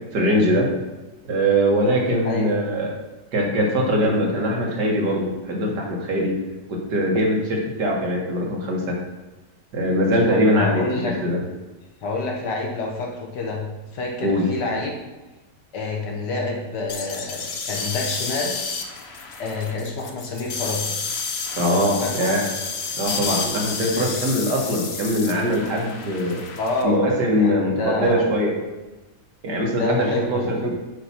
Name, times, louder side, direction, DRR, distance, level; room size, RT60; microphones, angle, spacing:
voice 1, 0.1-0.7 1.3-2.9 3.3-6.4 6.7-9.0 9.7-11.4 14.2-14.5 21.6-22.5 23.0-26.4 26.8-28.6 29.4-30.7, equal, 70° right, -1 dB, 2.1 m, -22 dB
voice 2, 10.3-11.1 12.0-13.6 13.9-14.9 15.7-18.6 19.4-20.8 22.0-22.3 24.0-24.1 26.6-27.1 27.4-28.2 29.8-30.7, left 3 dB, 75° left, 0 dB, 1.8 m, -27 dB
sound 1, 16.9-26.8, left 4 dB, 50° left, 0.9 m, -30 dB
9.1 x 4.2 x 5.8 m, 1.1 s
omnidirectional pair, 1.9 m